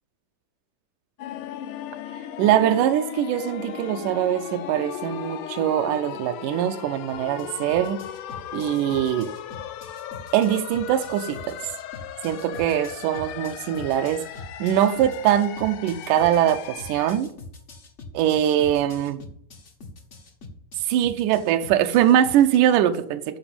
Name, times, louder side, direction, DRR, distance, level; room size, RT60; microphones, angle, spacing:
Choir Riser, 1.2-17.2, left 11 dB, 85° left, 2.3 m, -37 dB
voice 1, 2.4-8.0 8.5-9.3 10.3-11.6 12.2-14.2 14.6-17.3 18.1-19.2 20.8-23.4, right 11 dB, 90° right, 7 dB, 2.3 m, -22 dB
sound 1, 7.1-22.6, left 3 dB, 55° left, 0.7 m, -43 dB
13.5 x 5.0 x 8.7 m, 0.65 s
omnidirectional pair, 3.5 m